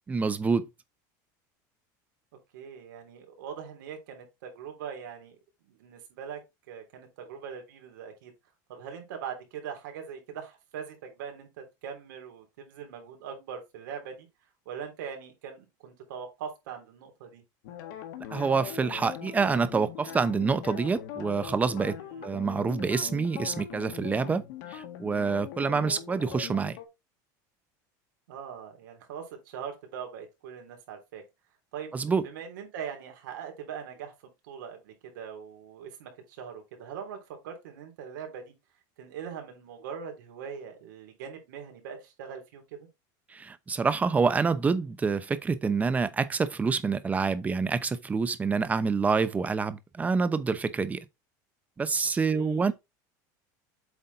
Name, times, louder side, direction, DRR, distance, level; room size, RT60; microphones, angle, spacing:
voice 1, 0.1-0.7 18.3-22.0 22.2-24.4 24.7-26.8 31.9-32.2 43.3-51.0 51.8-52.7, right 5 dB, 15° right, 0.7 m, -27 dB
voice 2, 2.5-5.3 5.7-6.4 6.7-8.3 8.7-14.3 14.6-17.4 21.9-22.3 28.3-31.2 31.7-34.1 34.4-37.2 37.4-38.5 39.0-42.9 52.3-52.7, right 7 dB, 90° right, 3.1 m, -41 dB
sound 1, 17.6-26.9, left 10 dB, 75° left, 1.8 m, -41 dB
7.9 x 4.1 x 4.0 m
supercardioid pair, 140°, 10 cm